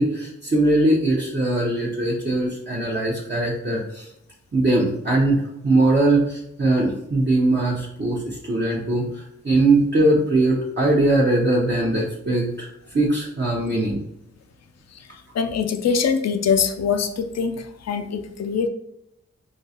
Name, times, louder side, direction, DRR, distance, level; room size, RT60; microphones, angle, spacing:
voice 1, 0.0-4.1 4.5-14.0, right 2 dB, 35° right, -5 dB, 0.8 m, -21 dB
voice 2, 15.1-18.7, left 6 dB, 60° left, 8 dB, 0.5 m, -23 dB
3.7 x 2.3 x 2.8 m, 0.81 s
cardioid pair, 45°, 30 cm